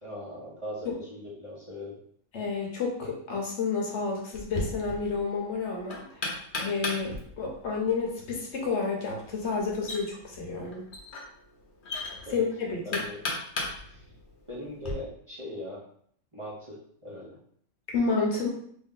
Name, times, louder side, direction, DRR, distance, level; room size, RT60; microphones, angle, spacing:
voice 1, 0.0-2.0 12.2-12.4 12.8-13.2 13.8-14.0 14.5-15.8 16.3-17.3, left 1 dB, 25° right, -7 dB, 1.0 m, -40 dB
voice 2, 2.3-10.9 12.3-13.0 17.9-18.5, left 4 dB, 65° left, -1 dB, 1.1 m, -30 dB
Knock, 4.3-14.9, left 2 dB, 50° left, 0.8 m, -38 dB
3.0 x 2.7 x 3.7 m, 0.63 s
omnidirectional pair, 1.3 m